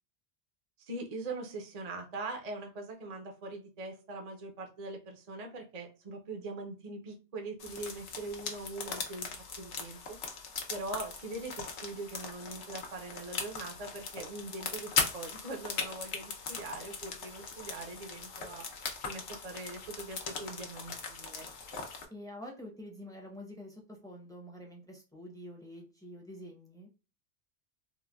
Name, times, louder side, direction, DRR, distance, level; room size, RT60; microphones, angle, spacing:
voice 1, 0.9-9.3 9.6-10.2 10.7-18.7 19.0-21.5, right 2 dB, 45° right, 2 dB, 0.6 m, -42 dB
sound 1, 7.6-22.1, left 5 dB, 75° left, 1.0 m, -39 dB
voice 2, 22.1-26.9, left 1 dB, 5° left, 0 dB, 0.6 m, -47 dB
3.8 x 2.1 x 2.3 m, 0.32 s
omnidirectional pair, 1.2 m